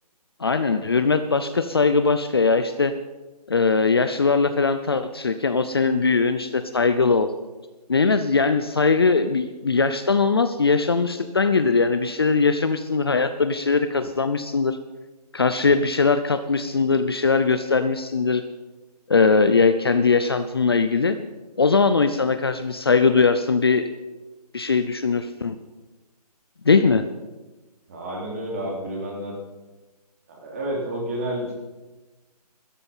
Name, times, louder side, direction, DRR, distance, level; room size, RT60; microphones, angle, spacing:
voice 1, 0.4-2.9 3.5-7.3 7.9-14.8 15.3-18.4 19.1-21.2 21.6-23.9 24.5-25.6 26.6-27.0, left 4 dB, 35° left, 10 dB, 0.6 m, -20 dB
voice 2, 27.9-29.3 30.4-31.5, right 1 dB, 20° right, -1 dB, 3.0 m, -30 dB
16.0 x 13.0 x 5.6 m, 1.1 s
hypercardioid pair, 180°, 21 cm